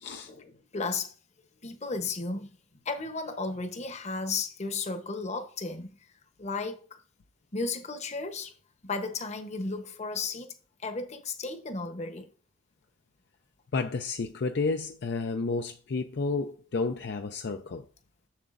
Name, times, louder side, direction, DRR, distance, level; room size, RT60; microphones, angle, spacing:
voice 1, 0.3-1.1 1.6-2.5 2.8-6.0 6.4-7.0 7.5-8.5 8.8-10.5 10.8-12.3, left 3 dB, 35° left, 0.9 m, -34 dB
voice 2, 13.7-17.9, left 4 dB, 60° left, 0.5 m, -31 dB
7.2 x 6.9 x 2.5 m
head